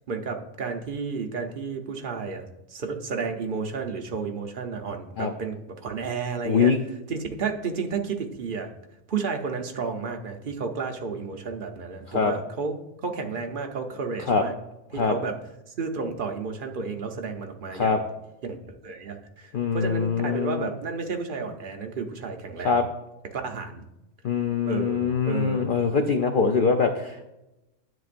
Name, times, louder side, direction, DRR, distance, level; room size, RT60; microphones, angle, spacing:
voice 1, 0.1-6.7 7.1-8.7 9.1-12.7 13.0-14.5 14.9-15.3 15.8-18.0 18.4-18.6 18.8-22.8 23.3-23.8 24.6-26.0, right 5 dB, 45° right, 4 dB, 0.7 m, -32 dB
voice 2, 6.5-6.8 12.1-12.3 14.3-14.4 15.0-15.2 17.7-18.0 19.5-20.7 22.6-22.9 24.2-27.2, left 5 dB, 65° left, 5 dB, 0.5 m, -23 dB
10.0 x 7.4 x 2.5 m, 0.93 s
omnidirectional pair, 1.5 m